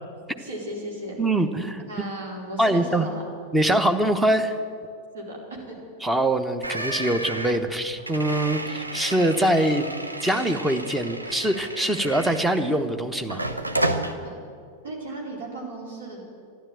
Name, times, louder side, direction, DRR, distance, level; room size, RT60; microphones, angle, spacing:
voice 1, 0.4-1.2 1.9-3.2 5.1-5.8 14.1-14.3 14.8-16.2, right 1 dB, 65° right, -1 dB, 4.2 m, -36 dB
voice 2, 1.2-1.8 2.6-3.1 3.5-4.5 6.0-9.9 10.2-13.4, right 1 dB, 5° right, 8 dB, 1.1 m, -23 dB
sound 1, 6.6-12.9 13.3-14.1, right 1 dB, 85° right, 0.9 m, -31 dB
12.5 x 11.5 x 9.2 m, 2.2 s
figure-of-eight pair, 90°, 0 cm